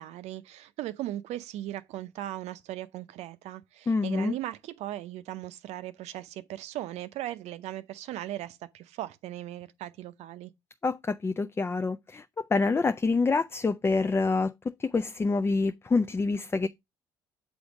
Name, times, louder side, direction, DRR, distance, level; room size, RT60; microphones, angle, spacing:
voice 1, 0.0-10.5, right 14 dB, 60° right, 0.6 m, -38 dB
voice 2, 3.9-4.4 10.8-16.7, left 3 dB, 20° left, 0.4 m, -27 dB
7.7 x 3.5 x 5.0 m
hypercardioid pair, 60°, 12 cm